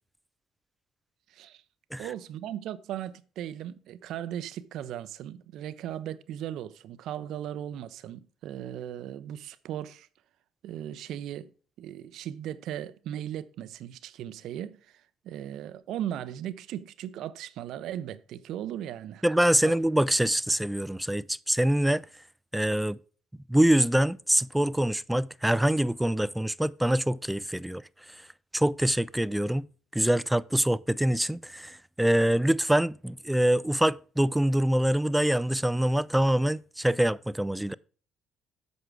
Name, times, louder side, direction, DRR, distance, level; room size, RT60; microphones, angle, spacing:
voice 1, 1.3-1.6 2.0-10.1 10.6-11.5 11.8-19.2 19.6-19.7, right 11 dB, 65° right, 0.5 m, -37 dB
voice 2, 19.2-22.1 22.5-23.0 23.5-27.8 28.5-29.7 29.9-37.8, right 1 dB, 5° right, 0.4 m, -25 dB
7.9 x 6.2 x 4.7 m
hypercardioid pair, 55°, 0 cm